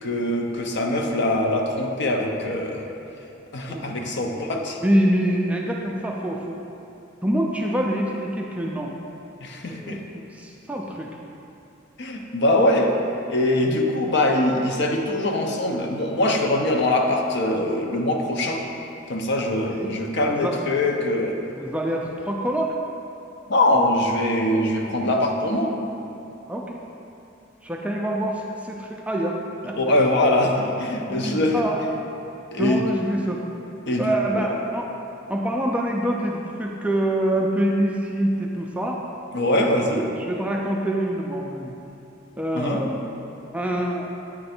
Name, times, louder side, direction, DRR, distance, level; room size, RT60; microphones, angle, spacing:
voice 1, 0.0-2.8 3.5-4.8 9.4-10.0 12.0-12.9 13.3-18.6 19.1-21.4 23.5-25.8 29.8-31.6 32.5-32.9 33.8-34.6 39.3-40.0 42.5-42.8, left 1 dB, 55° left, 2 dB, 0.6 m, -23 dB
voice 2, 3.7-4.1 4.3-4.5 4.8-6.6 7.2-8.9 9.7-11.1 19.8-19.9 20.2-20.6 21.5-22.7 26.5-26.8 27.6-29.4 29.6-29.8 31.1-31.8 32.6-33.4 34.0-34.9 35.3-39.0 40.0-41.8 42.4-43.0 43.5-44.2, right 1 dB, 5° right, -1 dB, 0.3 m, -25 dB
8.5 x 3.2 x 4.3 m, 2.8 s
head